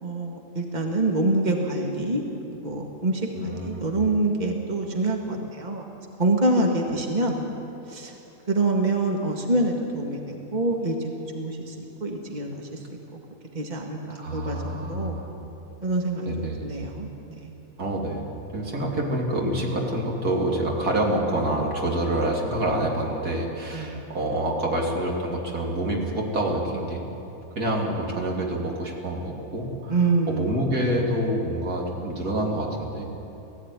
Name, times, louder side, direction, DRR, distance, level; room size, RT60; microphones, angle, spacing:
voice 1, 0.0-2.2 2.6-5.9 6.2-7.4 7.9-8.1 8.5-11.0 11.3-11.7 12.0-12.8 13.5-14.6 14.9-15.2 15.8-17.5 23.7-24.0 29.9-30.6, right 2 dB, 30° right, 1 dB, 2.0 m, -26 dB
voice 2, 3.3-4.0 14.2-15.3 16.3-16.7 17.8-27.0 27.5-30.0 30.3-33.0, right 1 dB, 85° right, -1 dB, 3.4 m, -27 dB
18.5 x 15.0 x 9.7 m, 2.9 s
omnidirectional pair, 1.6 m